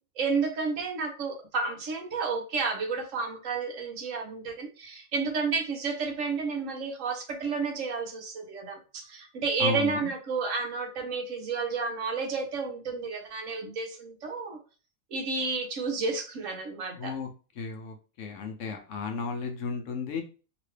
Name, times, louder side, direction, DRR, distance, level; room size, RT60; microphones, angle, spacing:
voice 1, 0.2-14.6 15.1-17.2, right 4 dB, 65° right, 2 dB, 1.1 m, -31 dB
voice 2, 9.6-10.1 17.0-17.3 17.6-20.2, left 4 dB, 65° left, 4 dB, 0.9 m, -34 dB
2.9 x 2.9 x 3.2 m, 0.35 s
omnidirectional pair, 1.5 m